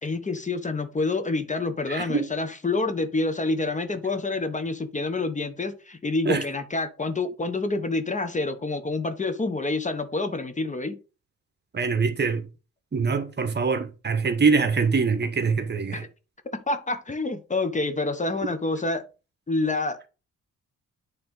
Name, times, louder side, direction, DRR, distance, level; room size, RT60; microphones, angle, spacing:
voice 1, 0.0-11.0 15.9-16.1 16.7-19.0 19.5-20.1, left 3 dB, 25° left, 1.1 m, -27 dB
voice 2, 1.9-2.3 6.2-6.4 11.7-12.4 12.9-16.0, right 5 dB, 35° right, 1.2 m, -24 dB
8.7 x 3.4 x 5.3 m
cardioid pair, 90°, 30 cm